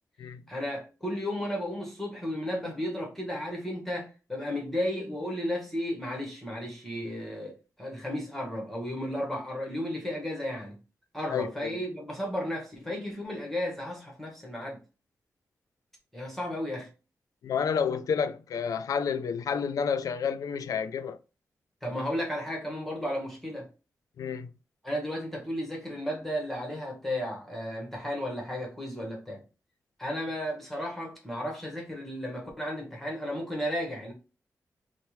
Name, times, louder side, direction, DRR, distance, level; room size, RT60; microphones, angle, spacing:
voice 1, 0.5-10.8 11.1-14.8 16.1-16.9 21.8-23.7 24.8-29.4 30.0-34.1, equal, 5° left, 1.0 m, -34 dB
voice 2, 11.3-11.7 17.4-21.2 24.2-24.5, left 6 dB, 75° left, 0.3 m, -30 dB
4.2 x 2.0 x 3.0 m
wide cardioid pair, 150°, 6 cm